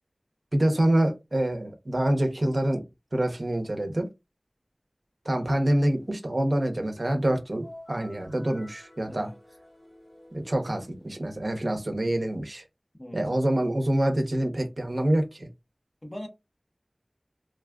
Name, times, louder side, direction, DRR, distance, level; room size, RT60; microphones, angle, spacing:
voice 1, 0.5-2.8 3.1-4.1 5.2-9.3 10.3-12.6 13.1-15.5, right 1 dB, 65° right, 0.9 m, -26 dB
sound 1, 7.6-11.2, left 1 dB, 55° left, 1.9 m, -50 dB
voice 2, 9.0-9.3 13.0-13.2 16.0-16.3, left 1 dB, 30° left, 1.1 m, -40 dB
3.9 x 2.4 x 2.3 m
wide cardioid pair, 45°, 0 cm